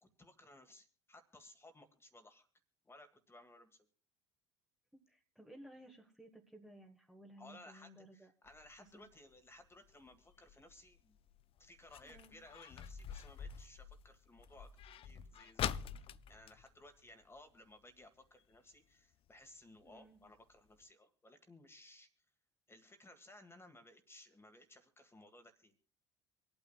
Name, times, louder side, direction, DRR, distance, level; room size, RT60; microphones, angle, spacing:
voice 1, 0.0-2.5 2.8-3.9 7.4-11.2 11.6-15.8 16.3-22.1 22.7-25.7, left 1 dB, 15° left, 7 dB, 1.8 m, -59 dB
voice 2, 5.1-8.3 8.8-9.0 12.0-12.3 19.8-20.2, right 1 dB, 5° right, 1 dB, 1.5 m, -57 dB
sound 1, 8.5-17.7 18.0-18.1 18.4-18.8 19.3-19.4 19.9-20.0 20.3-20.4 20.7-20.8, left 9 dB, 40° left, 0.4 m, -46 dB
26.0 x 8.9 x 2.4 m, 0.42 s
figure-of-eight pair, 60°, 14 cm